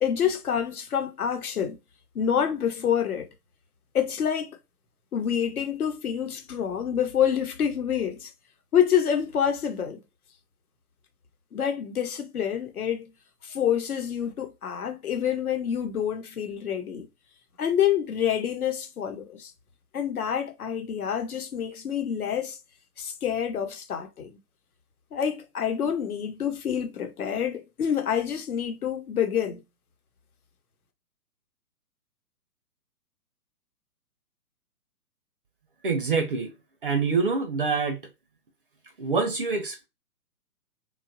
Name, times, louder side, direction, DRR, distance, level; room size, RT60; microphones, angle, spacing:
voice 1, 0.0-1.8 2.1-3.3 3.9-4.6 5.1-8.3 8.7-10.0 11.5-13.1 13.4-17.1 17.6-19.5 19.9-22.6 23.0-24.4 25.1-29.6, left 8 dB, 65° left, 1.0 m, -27 dB
voice 2, 35.8-36.5 36.8-38.0 39.0-39.8, right 4 dB, 35° right, 0.5 m, -25 dB
3.0 x 2.3 x 2.5 m
figure-of-eight pair, 130°, 48 cm